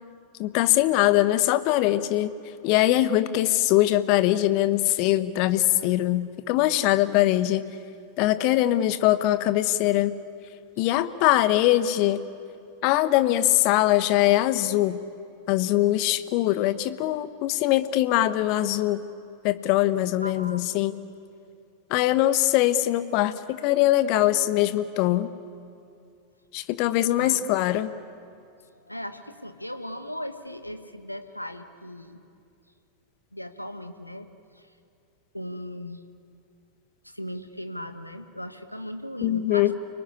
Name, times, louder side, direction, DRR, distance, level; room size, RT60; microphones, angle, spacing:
voice 1, 0.4-2.3 2.6-7.6 8.2-10.2 10.8-12.2 12.8-15.0 15.5-19.0 19.4-20.9 21.9-25.3 26.5-27.9 39.2-39.7, left 14 dB, 45° left, 12 dB, 1.3 m, -22 dB
voice 2, 20.2-20.7 27.2-27.4 27.7-27.9 28.7-32.2 33.3-34.3 34.5-34.7 35.3-36.0 37.0-39.7, equal, 90° left, 8 dB, 1.5 m, -37 dB
29.5 x 19.5 x 9.9 m, 2.5 s
figure-of-eight pair, 90°, 0 cm